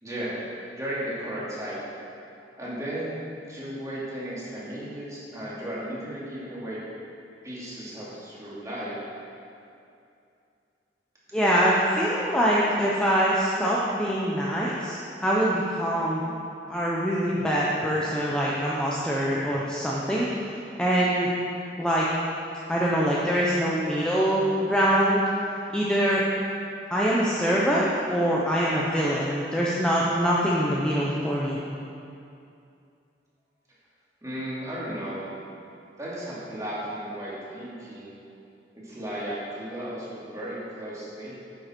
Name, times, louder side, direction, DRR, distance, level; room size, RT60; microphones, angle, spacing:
voice 1, 0.0-0.4 0.8-1.8 2.6-3.2 3.5-6.8 7.4-9.0 34.2-35.3 36.0-38.1 38.7-41.4, right 1 dB, 20° right, -8 dB, 2.4 m, -35 dB
voice 2, 11.3-16.3 16.7-21.3 21.8-22.1 22.7-25.2 25.7-26.2 26.9-31.6, equal, 5° left, -6 dB, 0.8 m, -24 dB
10.0 x 7.2 x 4.5 m, 2.6 s
head